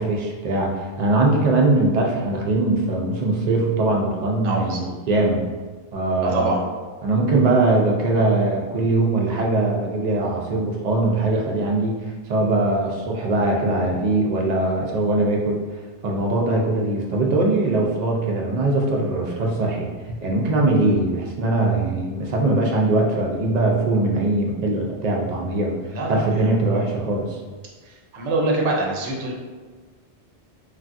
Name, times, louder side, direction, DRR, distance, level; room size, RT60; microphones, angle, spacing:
voice 1, 0.0-5.4 5.9-6.6 7.0-12.0 12.3-15.6 16.0-25.7 26.1-27.4, right 2 dB, 55° right, -1 dB, 0.4 m, -21 dB
voice 2, 4.4-4.8 6.2-6.6 25.9-26.2 26.6-26.9 27.9-29.3, right 2 dB, 85° right, -2 dB, 1.0 m, -25 dB
3.2 x 2.3 x 2.5 m, 1.4 s
omnidirectional pair, 1.2 m